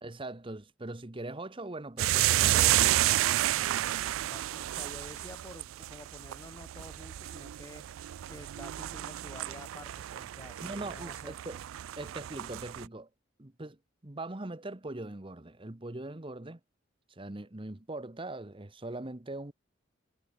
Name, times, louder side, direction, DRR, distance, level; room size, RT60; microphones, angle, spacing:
voice 1, 0.0-2.9 10.6-11.6 12.0-13.1 13.4-13.8 14.0-16.6 17.1-19.5, right 2 dB, 25° right, 1.1 m, -41 dB
sound 1, 2.0-12.9, right 14 dB, 90° right, 0.3 m, -30 dB
voice 2, 4.2-7.8 8.3-11.4, left 1 dB, 15° left, 0.9 m, -50 dB
head